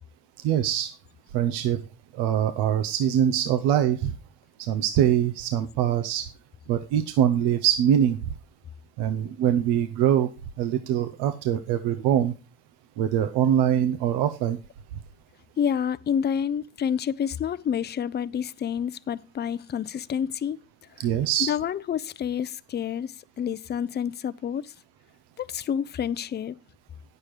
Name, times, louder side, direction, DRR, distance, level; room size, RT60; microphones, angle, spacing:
voice 1, 0.4-0.9 1.3-1.8 2.1-4.1 4.6-6.3 6.7-8.2 9.0-10.3 10.6-12.3 13.0-14.6 21.0-21.5, right 10 dB, 80° right, 0.8 m, -23 dB
voice 2, 15.6-20.6 21.4-24.7 25.4-26.6, left 8 dB, 25° left, 0.5 m, -28 dB
8.8 x 6.8 x 4.8 m
supercardioid pair, 75°, 40 cm